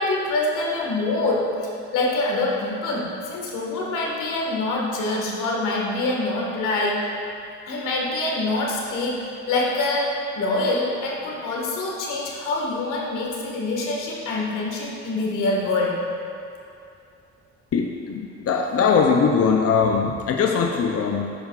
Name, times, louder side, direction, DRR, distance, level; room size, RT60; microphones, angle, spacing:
voice 1, 0.0-7.1 7.7-16.1, left 2 dB, 90° left, -2 dB, 1.8 m, -25 dB
voice 2, 17.7-21.3, left 5 dB, 50° left, 2 dB, 0.7 m, -21 dB
11.0 x 9.5 x 2.5 m, 2.6 s
cardioid pair, 90°, 30 cm